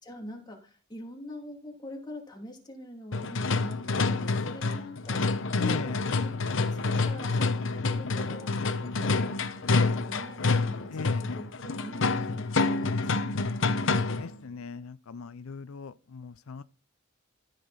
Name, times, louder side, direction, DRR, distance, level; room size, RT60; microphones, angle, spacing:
voice 1, 0.0-13.2, left 1 dB, 20° left, 2.7 m, -44 dB
sound 1, 3.1-14.4, left 3 dB, 65° left, 0.9 m, -28 dB
voice 2, 5.6-6.0 10.9-11.2 13.9-16.6, left 5 dB, 80° left, 0.5 m, -38 dB
14.0 x 6.7 x 4.1 m
head